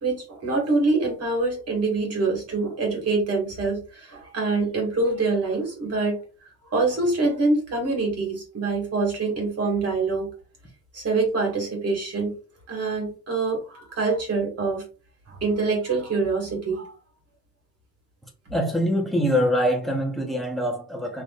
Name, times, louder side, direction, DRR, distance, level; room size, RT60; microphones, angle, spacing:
voice 1, 0.0-6.2 6.7-10.3 10.9-12.3 12.7-14.8 15.3-16.9, right 3 dB, 35° right, 1.9 m, -25 dB
voice 2, 18.5-21.2, equal, ahead, 0.9 m, -24 dB
6.0 x 3.3 x 2.4 m
cardioid pair, 175°, 43 cm